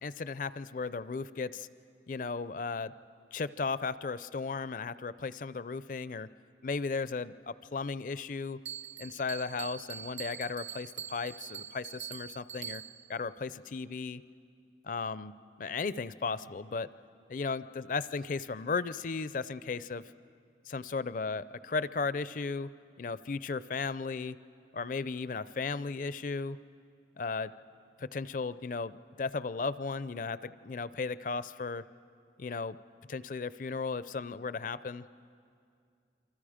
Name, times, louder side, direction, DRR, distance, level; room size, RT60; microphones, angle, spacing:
voice 1, 0.0-1.7 2.1-2.9 3.3-6.3 6.6-8.6 9.0-12.8 13.1-14.2 14.8-16.9 17.3-20.0 20.7-22.7 23.0-24.4 24.7-26.6 27.2-27.5 28.0-28.9 29.2-31.8 32.4-32.8 33.1-35.2, left 4 dB, 45° left, 16 dB, 0.4 m, -35 dB
Bell, 8.7-13.2, right 9 dB, 85° right, 0.7 m, -43 dB
28.0 x 25.0 x 5.0 m, 2.4 s
head